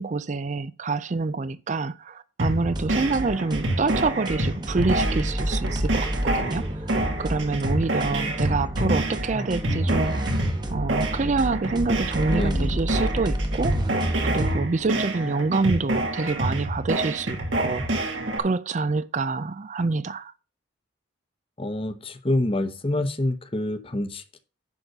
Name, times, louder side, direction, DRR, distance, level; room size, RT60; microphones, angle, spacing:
voice 1, 0.0-6.7 7.2-10.4 10.7-17.9 18.4-20.3, right 3 dB, 40° right, 0.4 m, -27 dB
sound 1, 2.4-18.4, right 1 dB, 85° right, 2.4 m, -27 dB
sound 2, 2.6-14.6, equal, 20° right, 1.1 m, -29 dB
voice 2, 8.1-8.5 12.3-12.8 21.6-24.4, left 1 dB, 30° left, 1.0 m, -27 dB
10.5 x 4.1 x 6.6 m
head